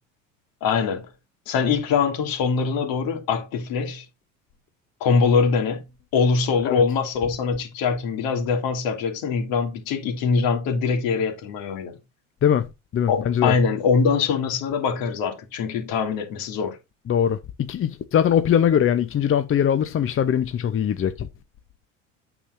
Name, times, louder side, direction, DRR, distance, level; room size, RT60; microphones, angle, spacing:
voice 1, 0.6-1.1 1.5-4.1 5.0-5.8 6.1-12.0 13.1-16.8, left 5 dB, 60° left, 2.7 m, -23 dB
voice 2, 12.9-13.5 17.1-17.4 17.7-21.3, left 9 dB, 30° left, 0.9 m, -21 dB
8.7 x 7.0 x 2.7 m
hypercardioid pair, 75°, 39 cm